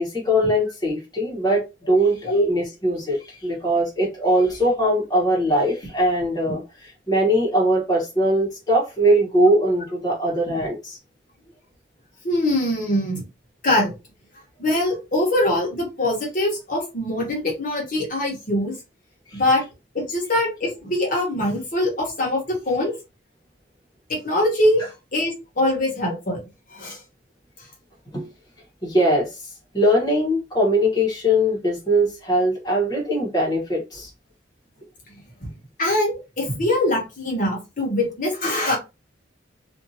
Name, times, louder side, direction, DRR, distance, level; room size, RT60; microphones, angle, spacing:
voice 1, 0.0-6.6 7.1-11.0 19.3-19.4 28.1-28.3 28.8-29.3 29.7-34.1, equal, 20° left, 1.1 m, -21 dB
voice 2, 12.2-13.2 13.6-13.9 14.6-18.7 19.3-19.6 19.9-22.9 24.1-26.4 26.7-27.0 35.4-35.5 35.8-38.8, left 1 dB, 45° left, 1.1 m, -23 dB
2.6 x 2.5 x 2.7 m
head